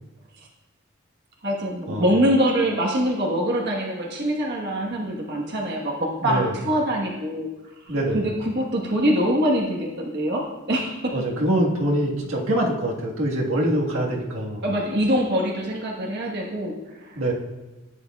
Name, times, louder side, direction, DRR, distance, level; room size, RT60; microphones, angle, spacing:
voice 1, 1.4-7.5 7.8-11.1 14.6-17.3, equal, 55° right, -2 dB, 1.3 m, -24 dB
voice 2, 6.2-6.5 7.9-8.2 11.1-14.6 17.1-17.3, right 1 dB, 80° right, -2 dB, 1.6 m, -24 dB
14.5 x 9.7 x 2.4 m, 1.1 s
head